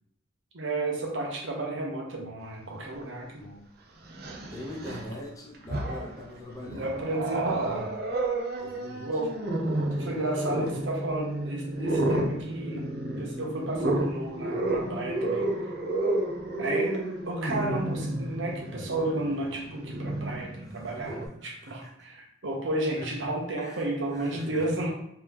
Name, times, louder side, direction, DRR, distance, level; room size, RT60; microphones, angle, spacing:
voice 1, 0.5-3.4 6.7-7.9 9.0-9.3 9.7-12.8 13.2-15.5 16.6-17.0 17.2-24.9, right 2 dB, 70° right, -1 dB, 1.0 m, -32 dB
Growling, 3.0-3.1 4.1-5.1 5.5-6.2 6.7-21.3, right 1 dB, 50° right, 0.6 m, -31 dB
voice 2, 3.2-3.7 4.5-6.9 8.6-9.1 20.6-22.1 23.0-23.1 23.6-23.8 24.1-24.7, left 1 dB, 15° left, -1 dB, 0.7 m, -43 dB
3.3 x 2.9 x 3.5 m, 0.77 s
head